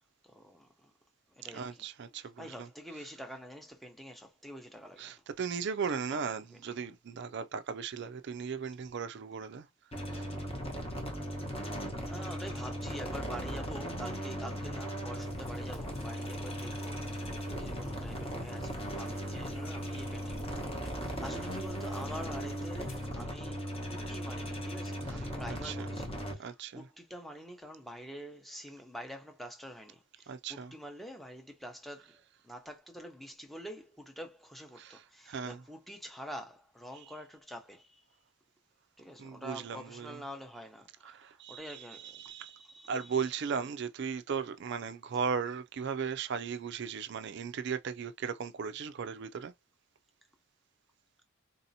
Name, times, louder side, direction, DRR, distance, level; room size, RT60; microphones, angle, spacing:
voice 1, 0.3-0.9 1.3-1.9 2.2-5.2 5.9-6.8 11.6-17.0 17.6-20.7 21.0-38.0 39.0-43.7, equal, ahead, 0.7 m, -47 dB
voice 2, 1.5-2.7 5.0-9.7 10.1-10.2 25.5-25.9 26.4-26.8 30.3-30.7 34.8-35.0 35.3-35.6 39.2-40.2 41.0-42.6 42.9-49.5, right 6 dB, 50° right, 0.4 m, -37 dB
sound 1, 9.9-26.3, equal, 25° left, 1.0 m, -38 dB
sound 2, 15.2-23.1, left 1 dB, 80° left, 2.4 m, -52 dB
4.0 x 2.8 x 2.7 m
head